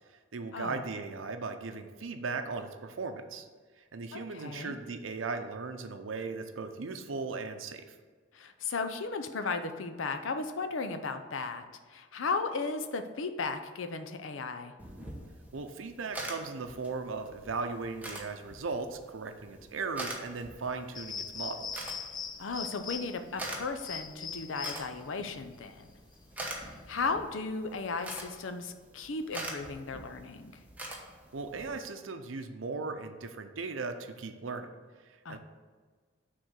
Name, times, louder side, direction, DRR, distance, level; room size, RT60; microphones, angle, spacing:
voice 1, 0.1-3.5 3.8-7.8 15.5-21.9 31.3-34.7 35.0-35.4, right 4 dB, 85° right, 7 dB, 0.6 m, -37 dB
voice 2, 4.1-4.8 8.3-14.7 22.4-25.9 26.5-30.6 35.2-35.4, left 4 dB, 85° left, 8 dB, 0.6 m, -35 dB
sound 1, 14.8-31.7, right 1 dB, 10° right, 1.0 m, -45 dB
sound 2, 20.9-27.1, left 6 dB, 20° left, 0.3 m, -41 dB
6.4 x 3.8 x 6.2 m, 1.5 s
head